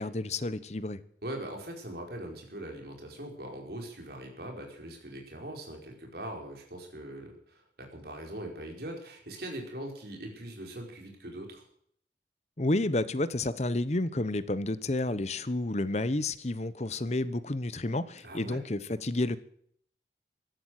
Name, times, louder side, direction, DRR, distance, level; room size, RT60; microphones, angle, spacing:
voice 1, 0.0-1.0 12.6-19.4, left 2 dB, 35° left, 15 dB, 0.9 m, -30 dB
voice 2, 1.2-11.6 18.2-18.6, right 1 dB, 55° right, 1 dB, 4.8 m, -41 dB
16.0 x 12.0 x 6.5 m, 0.64 s
head